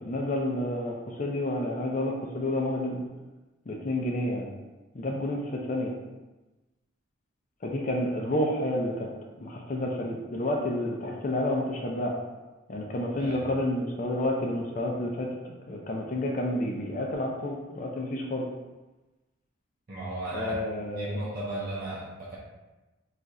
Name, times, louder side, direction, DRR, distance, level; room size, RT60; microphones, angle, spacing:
voice 1, 0.0-3.0 3.7-4.5 4.9-5.9 7.6-9.1 9.4-12.1 12.7-18.4 20.3-21.2, left 1 dB, 40° left, -1 dB, 0.4 m, -30 dB
voice 2, 19.9-20.6 20.9-22.4, right 1 dB, 45° right, -7 dB, 0.6 m, -35 dB
2.4 x 2.4 x 4.1 m, 1.1 s
head